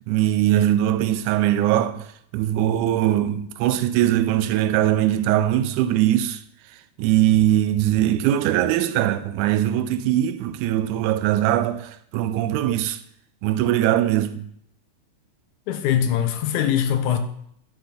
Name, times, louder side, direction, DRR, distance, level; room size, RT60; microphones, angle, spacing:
voice 1, 0.1-6.4 7.0-13.0 13.4-14.5, right 12 dB, 85° right, 2.0 m, -21 dB
voice 2, 15.7-17.2, left 9 dB, 85° left, 2.2 m, -22 dB
11.0 x 4.0 x 5.0 m
omnidirectional pair, 3.5 m